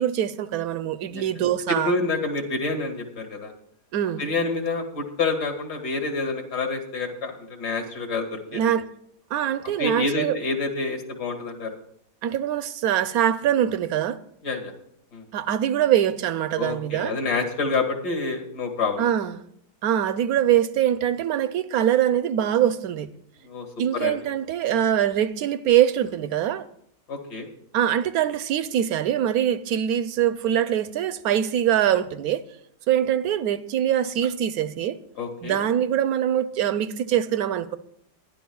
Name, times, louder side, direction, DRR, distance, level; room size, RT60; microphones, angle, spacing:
voice 1, 0.0-1.9 3.9-4.3 8.5-8.9 9.3-10.4 12.2-14.2 15.3-17.2 19.0-19.4 19.8-23.1 23.8-26.7 27.7-32.4 32.9-35.0 35.4-37.8, right 10 dB, 70° right, 1.1 m, -23 dB
voice 2, 1.8-3.5 4.2-8.7 9.8-11.7 14.4-14.7 15.1-15.2 16.6-19.1 23.4-23.7 23.9-24.2 27.1-27.5 35.2-35.6, left 3 dB, 75° left, 2.7 m, -28 dB
23.5 x 11.0 x 2.3 m
omnidirectional pair, 1.8 m